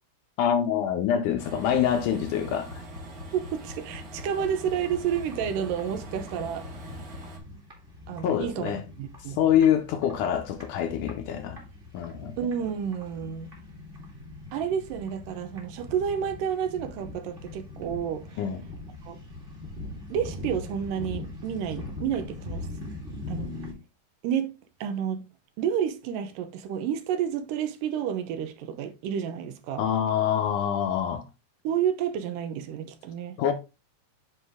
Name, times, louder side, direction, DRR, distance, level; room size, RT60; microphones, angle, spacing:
voice 1, 0.4-2.8 8.2-8.8 9.4-11.6 11.9-12.4 18.4-18.6 29.8-31.2 33.4-33.5, left 9 dB, 75° left, 2.1 m, -25 dB
Train, 1.4-7.4, equal, 40° right, 1.5 m, -41 dB
voice 2, 3.3-6.7 8.1-8.7 9.0-9.4 12.4-13.5 14.5-18.4 19.1-19.2 20.1-22.7 23.3-23.5 24.2-24.5 24.8-25.2 25.6-29.9 31.6-33.4, right 8 dB, 80° right, 2.3 m, -30 dB
sound 1, 4.8-23.7, left 2 dB, 20° right, 1.6 m, -42 dB
9.4 x 3.7 x 3.5 m
omnidirectional pair, 4.0 m